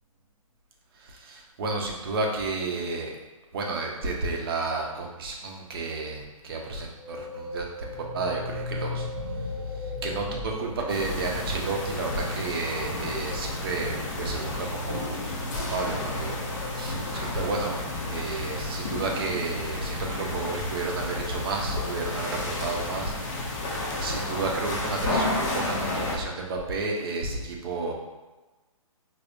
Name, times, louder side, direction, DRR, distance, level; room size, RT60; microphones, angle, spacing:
voice 1, 1.0-3.1 3.5-9.1 9.8-15.2 15.6-16.4 16.7-17.8 18.1-23.1 23.4-23.5 24.0-27.9, right 3 dB, 40° right, 0 dB, 0.6 m, -31 dB
sound 1, 7.0-11.6, left 3 dB, 85° left, 0.9 m, -35 dB
sound 2, 10.9-26.2, left 2 dB, 30° left, 0.5 m, -31 dB
5.0 x 2.0 x 2.5 m, 1.1 s
hypercardioid pair, 145°, 18 cm